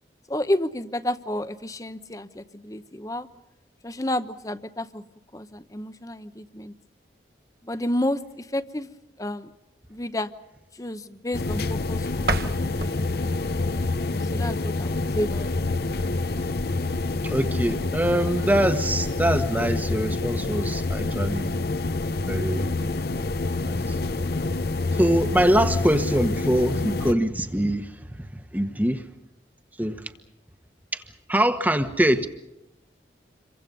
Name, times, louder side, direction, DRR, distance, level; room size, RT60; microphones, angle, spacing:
voice 1, 0.3-3.3 3.8-5.0 5.3-6.7 7.6-8.9 9.2-9.5 9.9-10.3 10.7-13.3 14.1-15.6, left 1 dB, 20° left, 0.9 m, -31 dB
sound 1, 11.3-27.1, left 3 dB, 60° left, 0.8 m, -27 dB
sound 2, 12.2-15.0, right 3 dB, 60° right, 1.3 m, -33 dB
voice 2, 17.2-21.5 22.2-22.7 23.6-24.0 25.0-29.1 29.8-30.1 30.9-31.0 31.3-32.3, right 1 dB, 10° right, 1.3 m, -24 dB
28.0 x 23.5 x 5.4 m
head